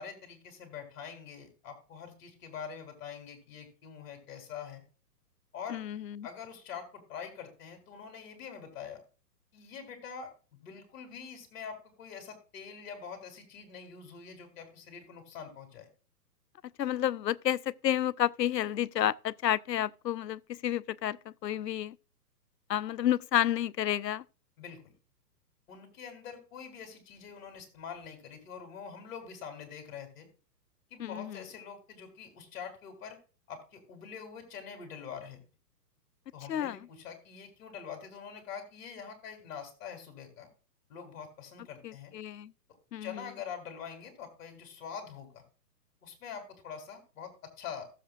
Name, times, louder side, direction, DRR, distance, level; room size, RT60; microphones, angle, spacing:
voice 1, 0.0-4.8 5.5-5.8 6.2-9.0 9.5-15.9 24.6-24.9 25.7-30.3 30.9-33.2 33.5-35.4 36.3-40.5 40.9-42.1 42.7-45.4 46.0-47.9, left 7 dB, 50° left, 3.6 m, -45 dB
voice 2, 5.7-6.3 16.8-22.0 22.7-24.2 31.0-31.4 36.5-36.8 41.8-42.5 42.9-43.2, left 11 dB, 85° left, 0.6 m, -31 dB
15.5 x 7.6 x 2.4 m
hypercardioid pair, 125°, 49 cm